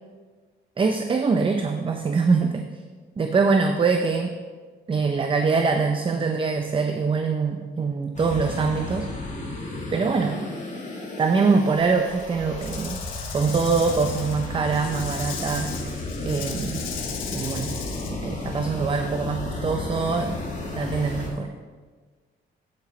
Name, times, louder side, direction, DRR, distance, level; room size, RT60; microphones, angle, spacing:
voice 1, 0.8-2.6 3.2-4.3 4.9-9.1 9.9-10.4 11.2-13.0 13.3-15.7 16.2-16.9 17.3-17.8 18.1-20.4 20.7-21.5, right 4 dB, 25° right, 6 dB, 0.6 m, -23 dB
sound 1, 8.2-21.3, left 2 dB, 40° left, 1.9 m, -33 dB
Rattle / Rattle (instrument), 12.6-18.1, left 7 dB, 80° left, 1.2 m, -37 dB
9.7 x 8.2 x 3.2 m, 1.5 s
cardioid pair, 90°, 20 cm